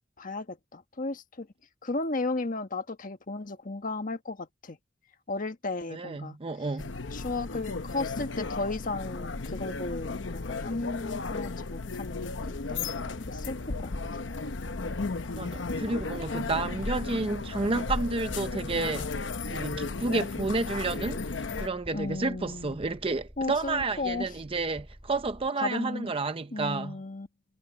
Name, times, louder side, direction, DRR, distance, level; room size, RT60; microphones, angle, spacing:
voice 1, 0.0-1.5 1.8-4.8 5.3-6.4 7.1-12.8 13.3-13.6 13.8-13.9 21.9-22.8 23.4-24.3 25.6-26.1 26.5-27.3, left 3 dB, 45° left, 1.4 m, -34 dB
voice 2, 5.9-6.9 15.4-19.1 19.5-27.0, right 3 dB, 30° right, 0.7 m, -31 dB
sound 1, 6.8-21.7, left 3 dB, 80° left, 0.9 m, -34 dB
sound 2, 12.1-25.5, equal, 5° right, 5.4 m, -50 dB
head